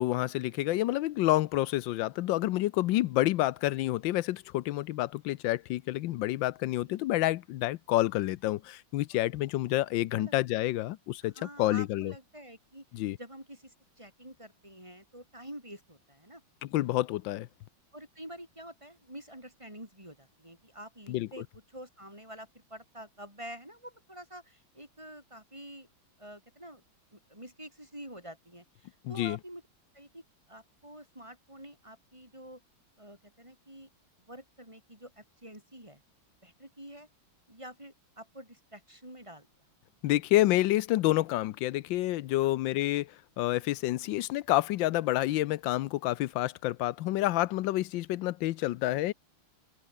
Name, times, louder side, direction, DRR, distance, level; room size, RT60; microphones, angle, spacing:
voice 1, 0.0-12.1 12.9-13.2 16.6-17.5 21.1-21.3 29.0-29.4 40.0-49.1, left 16 dB, 75° left, 1.3 m, -28 dB
voice 2, 11.2-12.9 13.2-16.4 17.9-25.9 26.2-26.8 27.1-29.6 29.9-32.6 33.0-33.9 34.3-36.0 36.4-37.1 37.5-39.5, equal, 15° right, 5.2 m, -48 dB
omnidirectional pair, 2.2 m